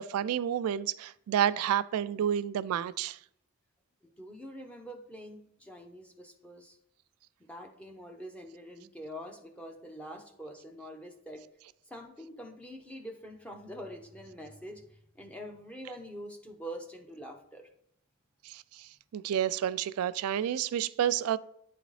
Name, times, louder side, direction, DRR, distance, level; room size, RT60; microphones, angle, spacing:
voice 1, 0.0-3.2 18.4-21.4, right 10 dB, 85° right, 0.3 m, -30 dB
voice 2, 4.2-6.8 7.4-11.4 11.9-17.7, equal, 5° left, 0.6 m, -45 dB
9.1 x 3.9 x 3.2 m
head